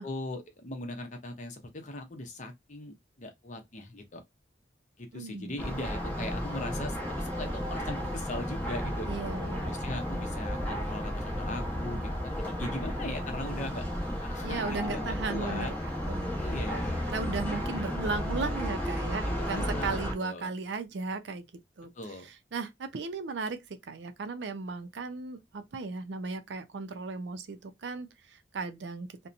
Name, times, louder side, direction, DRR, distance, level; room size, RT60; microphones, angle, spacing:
voice 1, 0.0-4.2 5.0-9.1 9.6-13.9 14.2-15.7 16.4-17.1 19.2-20.5 22.0-22.3, left 2 dB, 40° left, 0.7 m, -39 dB
voice 2, 5.1-5.6 9.1-9.9 14.4-16.5 17.1-21.4 21.8-21.9 22.2-29.3, right 4 dB, 70° right, 0.5 m, -36 dB
sound 1, 5.6-20.1, equal, 5° left, 0.8 m, -33 dB
2.8 x 2.1 x 2.5 m
head